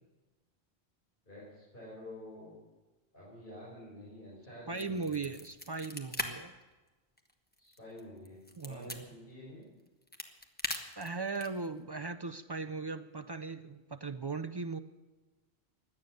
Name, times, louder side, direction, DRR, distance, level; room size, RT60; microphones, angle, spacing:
voice 1, 1.2-2.5 3.1-5.4 7.6-8.4 8.6-9.6, left 1 dB, 50° left, -8 dB, 6.0 m, -49 dB
sound 1, 4.7-6.3 6.6-6.7 7.2-9.0 9.8-11.7, left 1 dB, 10° left, 1.2 m, -40 dB
voice 2, 4.7-6.5 8.6-9.1 11.0-14.8, right 4 dB, 40° right, 9 dB, 0.3 m, -38 dB
17.0 x 11.5 x 6.5 m, 1.2 s
omnidirectional pair, 1.1 m